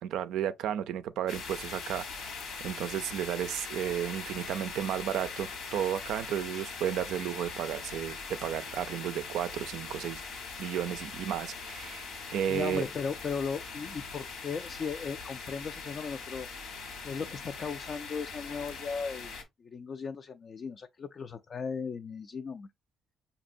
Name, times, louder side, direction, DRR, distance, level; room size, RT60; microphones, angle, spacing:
voice 1, 0.0-2.3 2.6-10.2 10.6-12.1 12.3-12.8, right 10 dB, 85° right, 0.3 m, -33 dB
sound 1, 1.3-19.4, left 4 dB, 80° left, 1.2 m, -41 dB
voice 2, 12.5-16.8 17.0-19.3 19.6-22.7, left 5 dB, 45° left, 0.3 m, -37 dB
5.2 x 2.7 x 2.5 m
cardioid pair, 90°, 0 cm